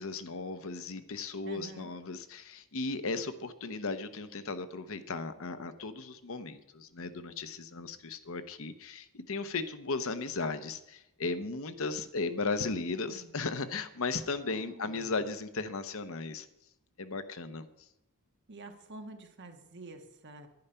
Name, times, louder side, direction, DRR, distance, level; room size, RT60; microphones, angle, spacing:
voice 1, 0.0-16.5 17.0-17.7, left 3 dB, 65° left, 11 dB, 0.9 m, -36 dB
voice 2, 1.4-1.9 13.1-13.3 14.4-15.2 18.5-20.5, right 2 dB, 55° right, 5 dB, 1.6 m, -48 dB
10.5 x 10.0 x 5.6 m, 0.88 s
head